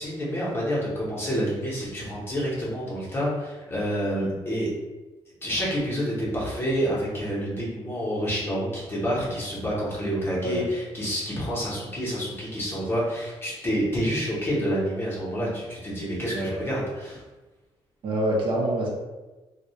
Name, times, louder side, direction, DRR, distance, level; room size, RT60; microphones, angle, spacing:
voice 1, 0.0-4.7 5.4-17.2, equal, 20° left, -6 dB, 0.7 m, -28 dB
voice 2, 18.0-18.9, right 1 dB, 55° right, -3 dB, 0.6 m, -26 dB
2.2 x 2.1 x 2.7 m, 1.2 s
wide cardioid pair, 160°, 11 cm